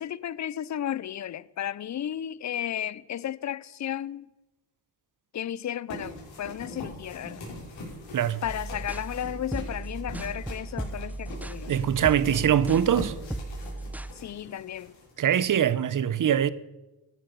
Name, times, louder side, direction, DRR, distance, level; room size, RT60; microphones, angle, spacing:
voice 1, 0.0-4.3 5.3-7.4 8.4-11.7 14.2-14.9, left 10 dB, 40° left, 0.5 m, -34 dB
sound 1, 5.9-15.4, left 1 dB, 80° left, 5.8 m, -43 dB
sound 2, 8.4-14.1, right 2 dB, 5° right, 0.6 m, -36 dB
voice 2, 11.7-13.1 15.2-16.5, right 9 dB, 45° right, 0.7 m, -23 dB
14.0 x 9.4 x 6.8 m
cardioid pair, 95°, 44 cm